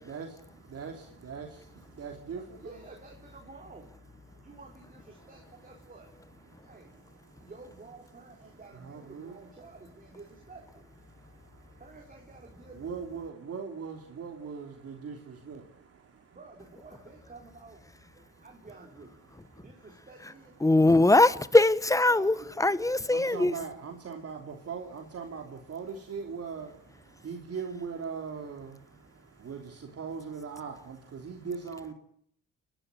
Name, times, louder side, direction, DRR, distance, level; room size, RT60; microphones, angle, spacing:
voice 1, 0.0-2.8 4.2-4.6 5.1-7.5 8.1-10.2 11.1-12.3 12.7-16.4 17.9-18.6 19.2-20.1 20.6-20.7 23.1-31.9, right 6 dB, 50° right, 3.3 m, -42 dB
voice 2, 2.5-3.9 4.4-6.1 6.6-7.0 7.4-10.9 11.8-13.2 16.3-17.9 18.2-19.2 19.6-20.6 22.1-22.9, right 3 dB, 30° right, 4.2 m, -51 dB
voice 3, 20.6-23.5, left 2 dB, 10° left, 1.1 m, -22 dB
29.5 x 12.0 x 9.8 m
cardioid pair, 90°, 30 cm